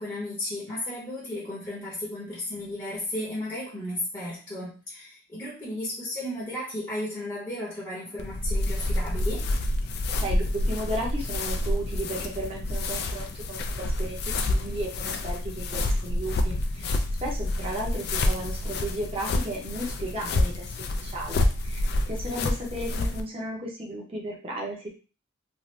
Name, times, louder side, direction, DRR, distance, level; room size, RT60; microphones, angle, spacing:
voice 1, 0.0-9.5, left 1 dB, 15° left, -7 dB, 0.8 m, -34 dB
sound 1, 8.2-23.2, left 1 dB, 55° left, 0.3 m, -28 dB
voice 2, 10.2-14.2 14.5-20.6 21.0-24.9, right 1 dB, 30° right, -2 dB, 0.7 m, -34 dB
2.7 x 2.5 x 3.2 m, 0.34 s
head